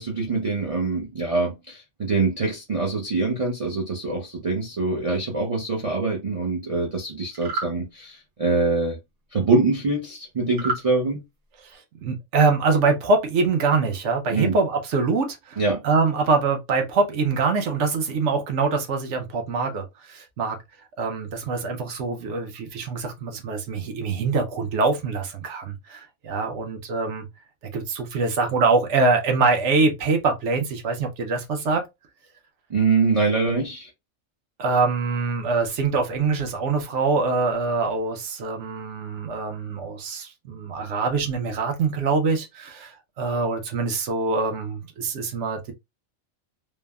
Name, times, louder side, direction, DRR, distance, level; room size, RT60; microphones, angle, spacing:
voice 1, 0.0-9.0 9.3-11.2 14.3-14.6 15.6-15.8 32.7-33.9, right 3 dB, 45° right, 0.4 m, -24 dB
sound 1, 7.3-7.7 10.5-10.9, right 4 dB, 80° right, 1.4 m, -28 dB
voice 2, 11.7-20.6 21.0-27.2 27.7-31.8 34.6-45.7, right 4 dB, 65° right, 1.0 m, -24 dB
3.3 x 2.1 x 2.3 m
omnidirectional pair, 1.4 m